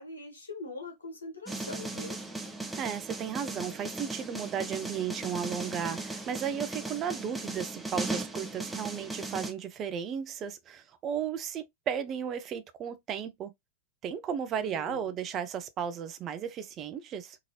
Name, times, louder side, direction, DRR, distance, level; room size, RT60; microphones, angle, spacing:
voice 1, 0.0-2.2 14.6-15.1, left 2 dB, 75° left, 1.2 m, -42 dB
sound 1, 1.5-9.5, right 2 dB, 5° right, 0.8 m, -37 dB
voice 2, 2.8-13.5 14.0-17.4, right 8 dB, 30° right, 0.4 m, -35 dB
2.8 x 2.6 x 2.7 m
figure-of-eight pair, 90°, 0 cm